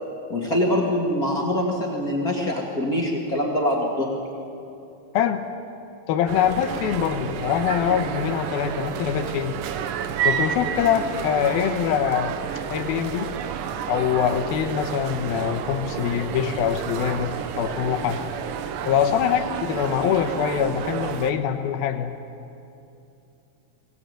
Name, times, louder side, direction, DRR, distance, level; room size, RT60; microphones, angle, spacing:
voice 1, 0.3-4.1, left 1 dB, 40° left, -2 dB, 1.3 m, -24 dB
voice 2, 6.1-9.6 10.2-12.3 12.7-13.3 13.9-18.2 18.9-22.1, left 9 dB, 75° left, 7 dB, 2.4 m, -24 dB
sound 1, 6.3-21.3, right 8 dB, 80° right, 1.9 m, -30 dB
21.5 x 18.0 x 9.1 m, 2.8 s
omnidirectional pair, 5.3 m